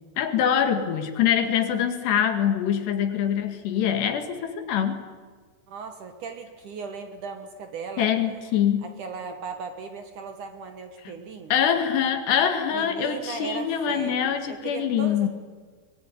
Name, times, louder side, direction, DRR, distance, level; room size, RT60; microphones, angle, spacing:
voice 1, 0.2-5.1 8.0-8.9 11.5-15.3, left 9 dB, 75° left, 7 dB, 4.0 m, -24 dB
voice 2, 5.7-8.1 8.8-11.5 12.7-15.3, right 5 dB, 60° right, 6 dB, 2.5 m, -37 dB
23.0 x 21.5 x 9.9 m, 1.5 s
omnidirectional pair, 4.9 m